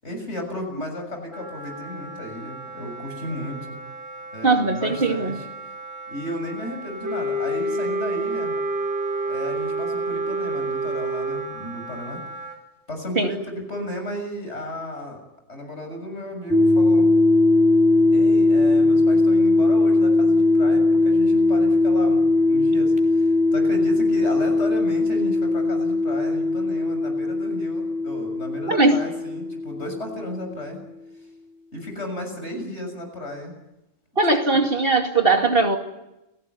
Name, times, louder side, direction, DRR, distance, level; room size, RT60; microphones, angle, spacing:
voice 1, 0.0-3.8 4.3-5.5 6.1-8.6 9.2-12.2 12.9-15.2 15.5-17.1 18.1-30.8 31.7-33.5 34.5-34.6, left 1 dB, 60° left, 4 dB, 7.1 m, -34 dB
Wind instrument woodwind instrument, 1.3-12.6, right 3 dB, 75° left, 5.3 m, -38 dB
voice 2, 4.4-5.4 13.2-13.3 28.7-29.1 34.2-35.8, right 3 dB, 45° right, 3 dB, 2.8 m, -19 dB
Wind instrument woodwind instrument 2, 7.0-11.5, right 2 dB, 65° right, 5.6 m, -27 dB
sound 1, 16.5-30.5, left 2 dB, 5° right, 3.9 m, -19 dB
29.5 x 17.5 x 9.6 m, 0.94 s
omnidirectional pair, 1.3 m